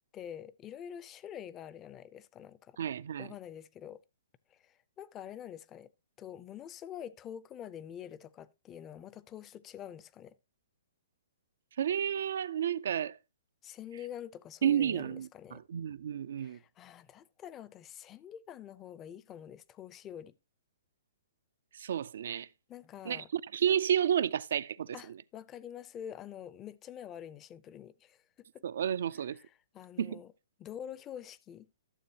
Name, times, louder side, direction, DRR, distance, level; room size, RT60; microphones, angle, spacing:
voice 1, 0.1-2.8 3.2-4.0 4.5-5.9 6.2-10.4 13.6-15.6 16.4-20.3 22.7-23.3 24.9-28.2 28.5-28.6 29.1-30.3 30.6-31.7, left 9 dB, 20° left, 0.5 m, -46 dB
voice 2, 2.8-3.3 11.8-13.2 14.6-16.6 21.7-22.5 23.1-25.0 28.6-29.4 30.0-30.2, right 9 dB, 70° right, 0.4 m, -31 dB
12.5 x 6.8 x 2.8 m
hypercardioid pair, 150°, 0 cm